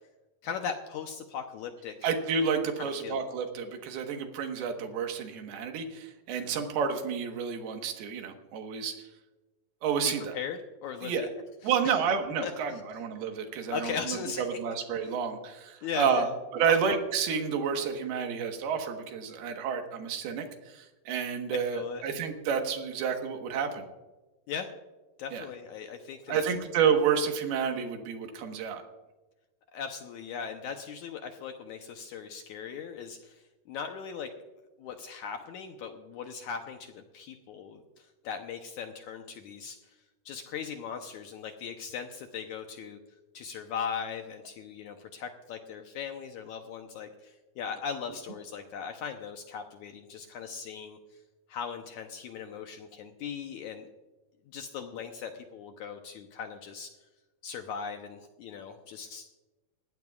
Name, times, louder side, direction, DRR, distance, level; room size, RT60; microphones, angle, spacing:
voice 1, 0.4-2.0 2.8-3.2 10.0-11.3 11.6-12.0 12.4-12.8 13.7-14.6 15.8-16.3 16.7-16.8 21.5-22.0 24.5-24.7 25.2-26.4 29.7-34.3 34.8-40.0 40.3-43.0 43.3-51.0 51.5-53.9 54.5-56.9 57.4-59.3, left 7 dB, 85° left, 5 dB, 1.7 m, -39 dB
voice 2, 2.0-9.1 9.8-10.3 11.0-11.3 11.6-14.2 14.6-20.4 20.7-23.8 25.3-25.4 26.3-28.8, right 6 dB, 85° right, 5 dB, 3.3 m, -30 dB
20.5 x 16.0 x 2.4 m, 1.1 s
omnidirectional pair, 4.4 m